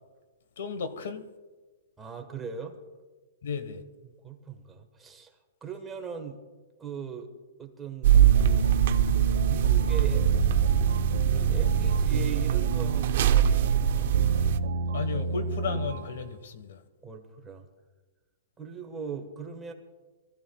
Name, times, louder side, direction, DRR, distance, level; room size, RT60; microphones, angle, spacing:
voice 1, 0.6-1.3 3.4-3.8 14.9-16.8, left 5 dB, 70° left, 1.3 m, -34 dB
voice 2, 2.0-2.8 4.0-5.3 5.6-6.4 6.8-7.3 7.6-8.7 9.5-10.2 11.3-14.1 17.0-17.7 18.6-19.7, right 6 dB, 10° right, 1.3 m, -39 dB
sound 1, 8.0-14.6, right 9 dB, 55° right, 0.6 m, -23 dB
sound 2, 8.1-16.2, right 3 dB, 85° right, 1.1 m, -31 dB
23.0 x 14.5 x 2.3 m
hypercardioid pair, 155°, 0 cm